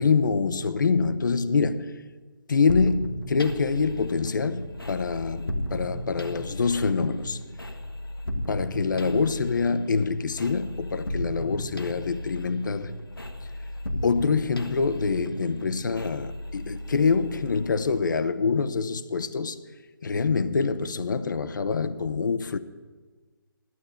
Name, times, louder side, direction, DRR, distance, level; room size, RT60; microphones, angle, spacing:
voice 1, 0.0-1.9 2.5-7.4 8.5-12.9 13.4-13.5 14.0-19.6 20.0-22.6, left 5 dB, 60° left, 0.7 m, -25 dB
sound 1, 2.7-18.3, left 1 dB, 85° left, 1.3 m, -35 dB
12.0 x 8.6 x 7.9 m
figure-of-eight pair, 140°, 12 cm